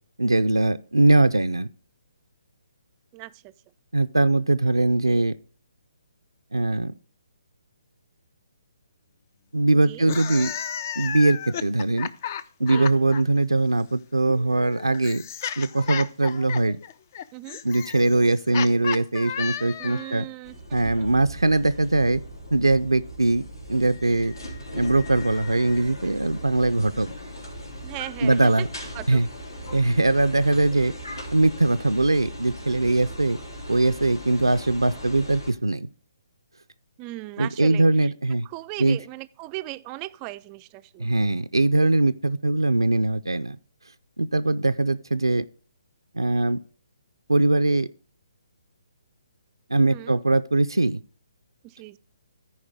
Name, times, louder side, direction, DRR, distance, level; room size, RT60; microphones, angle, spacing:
voice 1, 0.2-1.7 3.9-5.4 6.5-6.9 9.5-10.5 11.0-12.1 12.6-15.2 15.6-16.8 17.6-20.3 20.7-22.2 22.5-24.3 24.7-27.1 28.2-28.7 29.1-29.3 29.7-30.9 31.3-33.4 33.7-35.9 37.4-38.5 38.8-39.0 41.0-43.6 44.2-45.5 46.1-46.6 47.3-47.9 49.7-51.0, right 2 dB, 90° right, 0.4 m, -21 dB
voice 2, 3.1-3.5 9.8-10.1 12.6-12.9 17.3-17.6 19.8-21.1 27.8-28.5 28.9-29.2 37.0-38.1 38.5-41.1 49.9-50.2 51.6-52.0, right 19 dB, 25° right, 0.3 m, -38 dB
sound 1, 10.0-13.2 14.3-20.2, left 8 dB, 40° left, 0.4 m, -33 dB
sound 2, 20.4-35.5, equal, 80° left, 3.1 m, -38 dB
13.5 x 4.9 x 3.5 m
figure-of-eight pair, 140°, 2 cm